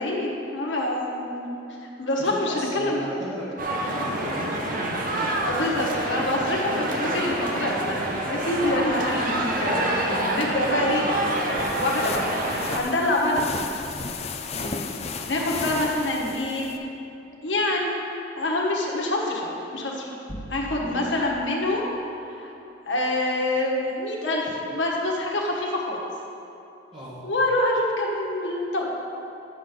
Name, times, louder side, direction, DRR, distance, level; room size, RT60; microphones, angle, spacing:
voice 1, 0.0-1.5 1.8-3.0 5.4-11.4 11.7-13.7 14.6-14.9 15.3-16.7 17.4-18.0 18.3-20.1 20.5-21.9 22.3-22.5 22.9-26.0 27.2-28.9, left 1 dB, 75° left, -2 dB, 1.5 m, -26 dB
voice 2, 2.2-3.5 3.9-5.3 5.6-6.4 6.6-7.0 8.9-9.2 14.5-14.8 20.8-21.2 26.9-27.2, equal, 25° right, -9 dB, 1.3 m, -37 dB
sound 1, 3.6-12.8, right 1 dB, 45° right, 0.9 m, -27 dB
sound 2, 11.4-16.8, left 4 dB, 35° left, 0.4 m, -34 dB
sound 3, 20.3-21.3, equal, 60° left, 1.6 m, -38 dB
10.5 x 7.3 x 3.9 m, 2.8 s
head